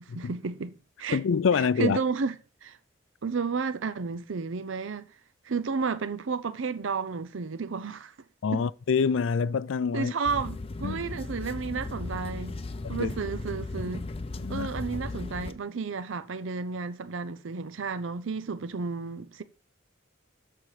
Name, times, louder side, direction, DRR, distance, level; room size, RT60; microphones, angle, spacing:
voice 1, 0.1-1.2 1.5-2.3 2.6-2.8 3.2-5.1 5.4-8.1 8.5-8.6 9.9-12.6 12.9-14.1 14.5-19.4, right 5 dB, 75° right, 0.6 m, -32 dB
voice 2, 1.1-2.0 8.4-10.1 10.8-11.0 12.8-13.1 14.4-14.7, left 6 dB, 70° left, 0.4 m, -26 dB
sound 1, 10.2-15.5, left 2 dB, 30° left, 0.6 m, -36 dB
13.0 x 4.4 x 4.9 m
head